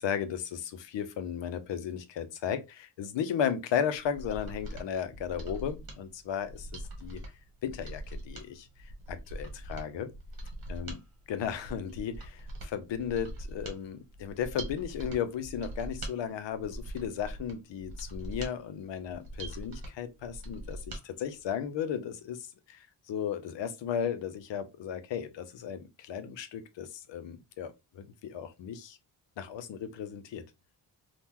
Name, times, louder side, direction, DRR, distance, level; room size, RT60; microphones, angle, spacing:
voice 1, 0.0-7.2 7.6-10.1 10.7-11.0 11.3-29.0 29.4-30.4, left 8 dB, 75° left, 0.7 m, -35 dB
Mechanisms, 4.0-21.0 21.4-21.5, right 1 dB, 55° right, 1.1 m, -42 dB
3.6 x 2.4 x 2.8 m
wide cardioid pair, 160°, 44 cm